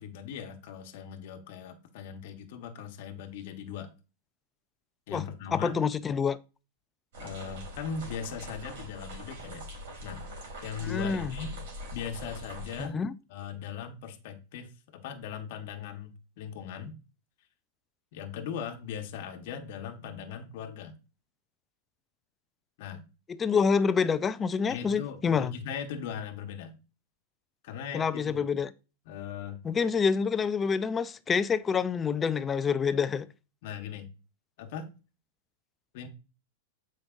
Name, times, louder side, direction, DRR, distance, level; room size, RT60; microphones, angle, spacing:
voice 1, 0.0-3.9 5.1-5.8 7.2-9.6 10.0-10.2 10.6-11.6 11.9-13.0 13.3-17.0 18.1-21.0 22.8-23.0 24.7-26.7 27.6-28.4 29.0-29.6 33.6-34.1 34.6-34.9 35.9-36.1, left 7 dB, 60° left, 1.1 m, -39 dB
voice 2, 5.5-6.4 10.8-11.3 12.8-13.1 23.3-25.5 27.9-28.7 29.6-33.3, left 6 dB, 20° left, 0.4 m, -27 dB
sound 1, 7.1-12.9, equal, 65° right, 3.5 m, -42 dB
7.7 x 5.2 x 2.5 m
hypercardioid pair, 135°, 0 cm